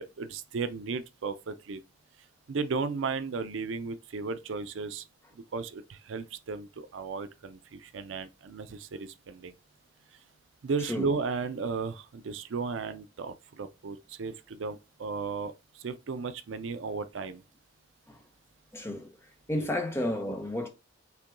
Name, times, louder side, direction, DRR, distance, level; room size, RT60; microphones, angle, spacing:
voice 1, 0.0-1.8 2.5-5.0 5.3-9.5 10.6-17.4 19.6-19.7, right 4 dB, 80° right, 0.5 m, -35 dB
voice 2, 18.7-19.2 19.5-20.7, left 1 dB, 15° left, 0.8 m, -32 dB
5.7 x 2.2 x 3.8 m
head